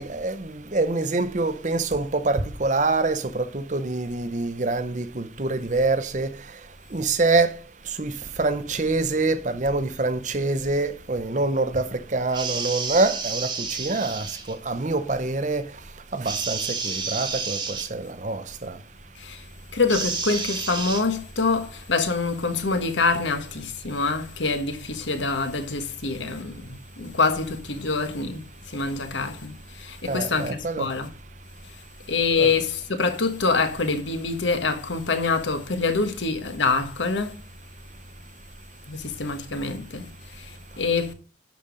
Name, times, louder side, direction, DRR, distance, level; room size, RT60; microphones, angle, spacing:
voice 1, 0.0-6.3 6.9-7.6 8.0-8.1 8.4-15.6 16.1-18.8 30.1-30.9 32.4-32.5, right 3 dB, 40° right, 0.7 m, -25 dB
sound 1, 12.3-14.5 16.2-17.9 19.9-21.0, right 5 dB, 25° right, 1.3 m, -30 dB
voice 2, 19.7-31.1 32.1-37.4 38.9-41.1, left 4 dB, 75° left, 1.3 m, -26 dB
11.0 x 5.2 x 5.2 m
head